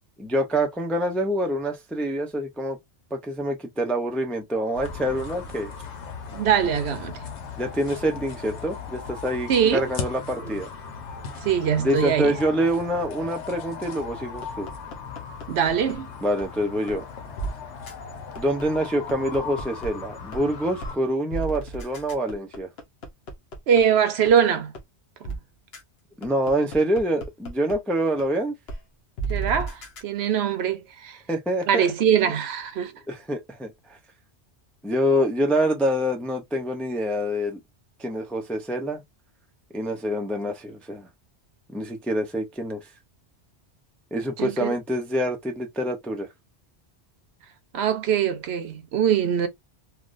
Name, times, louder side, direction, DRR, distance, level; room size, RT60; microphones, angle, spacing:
voice 1, 0.2-2.8 3.1-5.7 7.6-10.7 11.8-14.7 16.2-17.0 18.4-22.7 26.2-28.5 31.3-31.9 33.1-34.0 34.8-37.6 38.0-39.0 39.7-41.1 41.7-42.8 44.1-46.3, equal, ahead, 0.3 m, -26 dB
sound 1, 4.7-21.0, left 5 dB, 85° left, 1.1 m, -38 dB
voice 2, 6.3-7.2 9.5-9.8 10.4-10.5 11.4-12.4 15.5-16.1 23.7-24.7 25.2-25.4 29.3-31.2 31.7-32.9 44.4-44.7 47.7-49.5, right 8 dB, 70° right, 0.9 m, -22 dB
sound 2, 14.4-15.9 16.4-16.5 16.9-17.0 17.4-17.5 17.9-18.0 18.3-19.9 20.3-20.4 20.8-20.9 21.3-23.8 24.3-24.4 24.7-24.8 25.2-25.4 25.7-25.8 26.2-27.7 28.2-28.3 28.7-28.8 29.2-30.0, right 3 dB, 65° left, 1.1 m, -33 dB
3.3 x 2.3 x 2.5 m
omnidirectional pair, 1.2 m